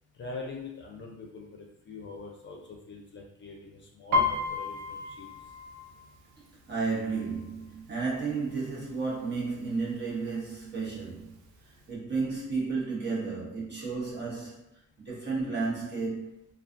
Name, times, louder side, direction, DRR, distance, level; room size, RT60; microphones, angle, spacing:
voice 1, 0.1-5.5, left 3 dB, 40° left, 0.5 m, -43 dB
Piano, 4.1-7.8 8.1-8.5 8.9-9.5 10.1-10.2 10.4-11.5 11.8-11.9, left 3 dB, 75° right, 0.5 m, -32 dB
voice 2, 6.7-11.3 11.9-14.6 15.0-16.5, right 4 dB, 35° right, 1.1 m, -32 dB
2.4 x 2.4 x 2.5 m
cardioid pair, 90°, 30 cm